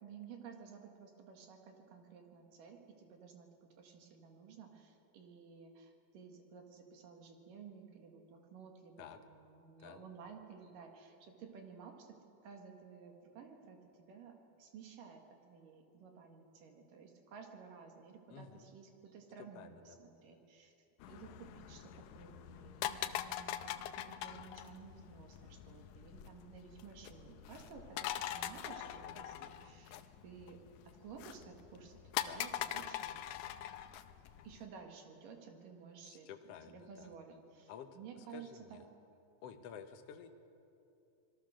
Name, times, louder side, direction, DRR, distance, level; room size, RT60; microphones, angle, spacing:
voice 1, 0.0-12.2 12.4-20.7 21.1-30.6 30.8-33.2 34.4-38.5, right 6 dB, 65° right, 3 dB, 3.2 m, -54 dB
voice 2, 18.3-18.7 19.4-20.0 32.2-32.4 36.0-37.1 37.7-37.9 38.2-38.8 39.4-40.3, left 8 dB, 70° left, 6 dB, 1.5 m, -51 dB
sound 1, 21.0-34.6, left 12 dB, 90° left, 1.6 m, -43 dB
26.0 x 21.0 x 6.4 m, 2.7 s
omnidirectional pair, 4.3 m